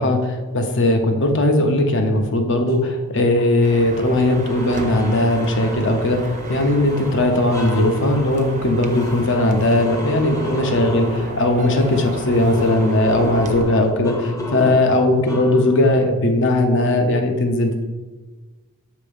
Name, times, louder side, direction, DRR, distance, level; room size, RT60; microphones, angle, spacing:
voice 1, 0.0-17.8, left 1 dB, 55° left, 5 dB, 0.7 m, -18 dB
sound 1, 3.4-3.5 4.1-16.1, left 1 dB, 15° left, 0.7 m, -33 dB
sound 2, 3.6-13.6, right 2 dB, 35° right, 0.5 m, -33 dB
7.0 x 2.9 x 5.1 m, 1.3 s
head